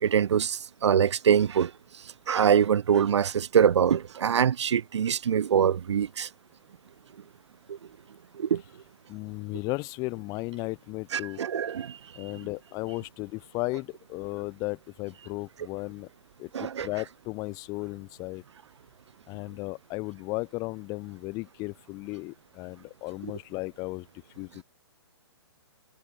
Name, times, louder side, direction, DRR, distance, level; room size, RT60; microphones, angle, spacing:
voice 1, 0.0-6.3 7.7-7.8 8.3-8.6 11.1-12.0 16.5-16.9, right 8 dB, 80° right, 0.7 m, -24 dB
voice 2, 9.1-11.4 12.1-16.1 16.4-18.4 19.3-24.1 24.4-24.6, left 24 dB, 25° left, 1.1 m, -35 dB
hypercardioid pair, 150°, 14 cm